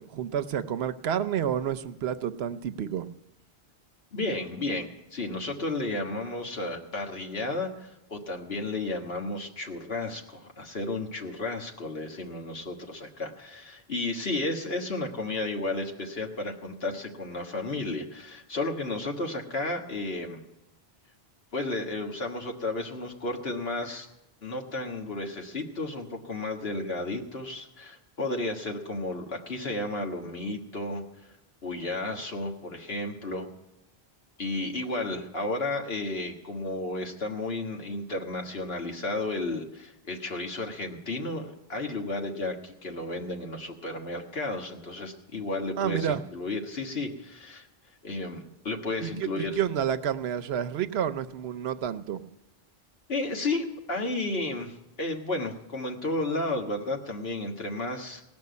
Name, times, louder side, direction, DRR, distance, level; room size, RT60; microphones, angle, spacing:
voice 1, 0.0-3.1 45.8-46.2 49.0-52.2, right 9 dB, 80° right, 11 dB, 0.9 m, -30 dB
voice 2, 4.1-20.4 21.5-24.1 24.4-31.0 31.6-33.5 34.4-47.7 48.0-49.6 53.1-58.2, left 2 dB, 70° left, 2 dB, 1.8 m, -33 dB
18.0 x 6.1 x 9.4 m, 0.93 s
omnidirectional pair, 1.1 m